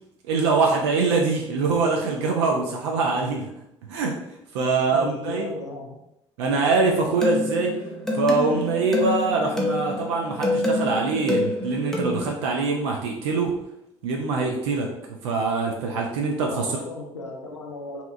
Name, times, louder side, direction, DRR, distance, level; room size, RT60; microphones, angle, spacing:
voice 1, 0.2-3.5 3.9-4.2 4.5-5.5 6.4-7.7 8.1-13.5 14.0-14.9 15.2-16.7, right 4 dB, 65° right, 0 dB, 0.4 m, -23 dB
voice 2, 4.9-6.0 16.5-18.0, left 2 dB, 85° left, 1 dB, 0.4 m, -35 dB
sound 1, 6.8-12.3, left 1 dB, 5° left, 0.6 m, -27 dB
2.7 x 2.2 x 2.4 m, 0.81 s
figure-of-eight pair, 55°, 15 cm